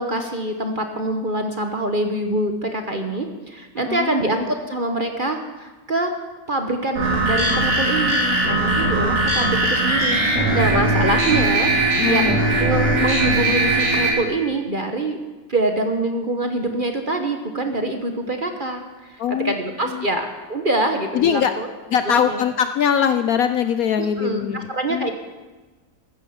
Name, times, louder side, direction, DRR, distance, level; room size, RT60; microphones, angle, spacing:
voice 1, 0.0-6.1 6.5-15.2 15.5-21.7 22.0-22.4 24.0-25.1, right 2 dB, 35° right, 5 dB, 1.0 m, -25 dB
voice 2, 3.9-4.2 11.9-12.4 19.2-19.5 19.9-20.1 21.1-21.5 21.9-25.1, left 8 dB, 65° left, 9 dB, 1.0 m, -21 dB
sound 1, 7.0-14.1, right 2 dB, 70° right, 4.3 m, -19 dB
15.5 x 13.0 x 5.7 m, 1.2 s
omnidirectional pair, 1.9 m